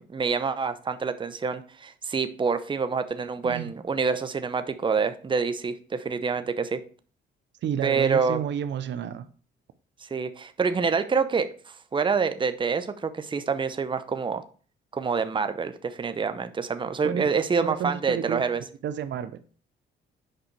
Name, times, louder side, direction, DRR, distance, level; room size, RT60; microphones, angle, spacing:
voice 1, 0.0-6.8 7.8-8.4 10.0-14.4 14.9-18.6, right 5 dB, 25° right, 0.7 m, -27 dB
voice 2, 7.6-9.2 17.0-18.4 18.8-19.4, right 9 dB, 65° right, 0.6 m, -31 dB
6.7 x 5.1 x 4.5 m
cardioid pair, 90°, 20 cm